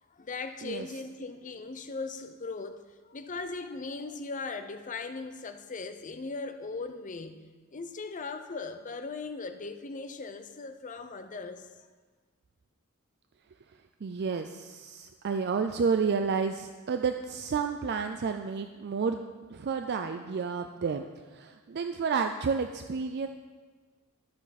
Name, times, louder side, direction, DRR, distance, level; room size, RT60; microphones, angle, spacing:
voice 1, 0.1-11.7, left 3 dB, 40° left, 9 dB, 0.6 m, -39 dB
voice 2, 14.0-23.3, right 5 dB, 55° right, 6 dB, 0.4 m, -31 dB
13.0 x 7.1 x 4.2 m, 1.4 s
head